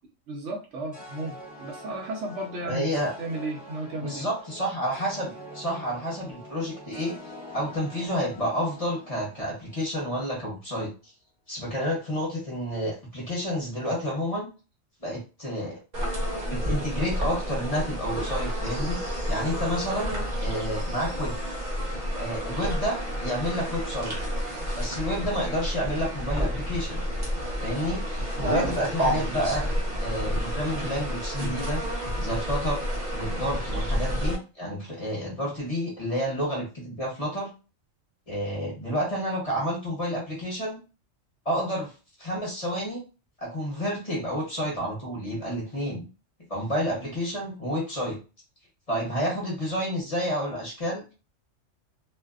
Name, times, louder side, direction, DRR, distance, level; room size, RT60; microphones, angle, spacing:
voice 1, 0.3-4.3 28.4-28.8, right 2 dB, 70° right, 0 dB, 1.0 m, -34 dB
sound 1, 0.9-10.2, left 1 dB, 10° left, 0.7 m, -45 dB
voice 2, 2.7-3.1 4.0-7.2 7.5-10.9 11.5-14.5 15.0-16.1 16.3-19.0 19.3-21.4 22.1-24.2 24.8-27.0 27.6-28.0 28.4-29.7 30.0-31.8 32.2-32.8 33.1-37.5 38.3-40.8 41.4-41.9 42.2-43.0 43.4-46.1 46.5-48.2 48.9-51.0, equal, 30° left, -5 dB, 0.9 m, -30 dB
sound 2, 15.9-34.3, equal, 40° right, 0.9 m, -30 dB
2.6 x 2.1 x 2.3 m, 0.32 s
omnidirectional pair, 1.3 m